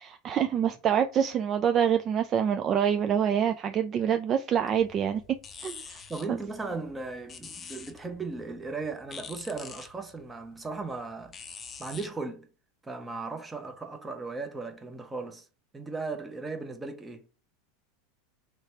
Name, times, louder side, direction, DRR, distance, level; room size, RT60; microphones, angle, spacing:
voice 1, 0.0-5.2 5.6-6.0 6.3-6.4, right 8 dB, 40° right, 0.3 m, -26 dB
sound 1, 4.5-12.1, left 5 dB, 25° left, 0.6 m, -47 dB
voice 2, 6.1-11.3 11.8-12.5 12.8-15.5 15.7-17.3, right 3 dB, 15° right, 0.9 m, -37 dB
3.2 x 3.2 x 2.8 m
hypercardioid pair, 95°, 0 cm